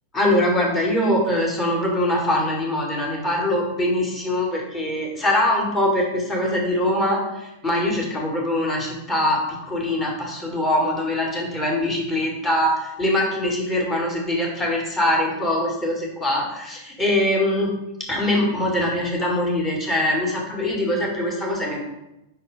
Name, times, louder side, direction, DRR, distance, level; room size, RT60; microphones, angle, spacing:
voice 1, 0.1-17.7 18.1-21.8, left 1 dB, 15° left, -2 dB, 1.9 m, -23 dB
5.3 x 4.2 x 4.9 m, 0.90 s
figure-of-eight pair, 90°, 0 cm